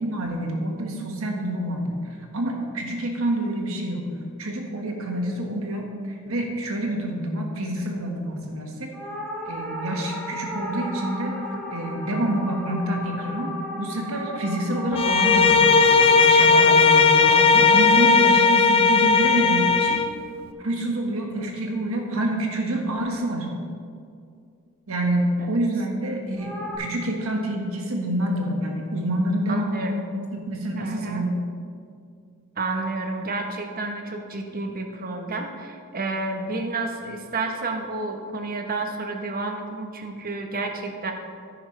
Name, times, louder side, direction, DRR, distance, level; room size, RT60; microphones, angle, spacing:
voice 1, 0.0-1.9 2.3-4.1 4.4-8.9 9.5-11.3 11.7-20.0 20.6-23.5 24.9-31.3, right 1 dB, 75° right, 1 dB, 1.5 m, -27 dB
sound 1, 8.9-19.4 26.4-26.8, equal, 5° left, 1.3 m, -36 dB
Bowed string instrument, 14.9-20.1, left 5 dB, 25° left, 0.4 m, -17 dB
voice 2, 17.9-18.5 29.5-29.9 30.7-31.3 32.6-41.1, right 3 dB, 40° right, 4 dB, 1.0 m, -30 dB
10.5 x 9.6 x 3.3 m, 2.2 s
head